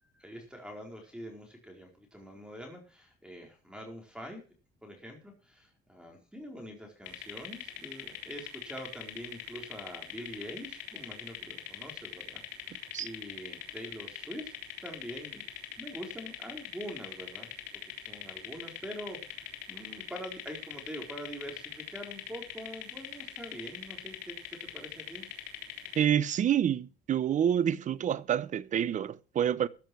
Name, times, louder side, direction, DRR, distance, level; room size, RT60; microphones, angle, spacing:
voice 1, 0.0-4.4 4.8-25.3, equal, 5° right, 4.3 m, -45 dB
sound 1, 7.1-26.1, left 11 dB, 85° left, 3.3 m, -42 dB
voice 2, 26.0-29.7, right 9 dB, 45° right, 0.9 m, -28 dB
14.5 x 7.5 x 6.1 m
cardioid pair, 110°, 17 cm